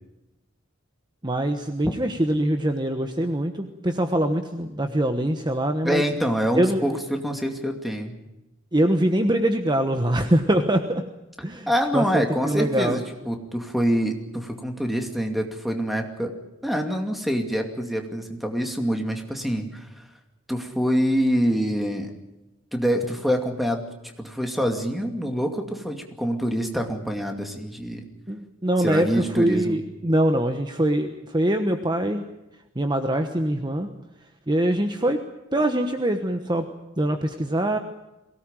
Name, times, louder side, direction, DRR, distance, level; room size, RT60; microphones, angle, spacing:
voice 1, 1.2-6.0 6.6-6.8 8.7-11.0 11.4-13.0 28.3-32.2 32.7-33.9 34.5-35.2 35.5-36.7 37.0-37.8, right 1 dB, 20° right, 6 dB, 1.1 m, -23 dB
voice 2, 5.8-8.1 11.7-16.3 16.6-20.0 20.5-22.1 22.7-28.1 28.8-29.8, equal, ahead, 3 dB, 2.4 m, -26 dB
22.5 x 18.0 x 9.0 m, 0.99 s
head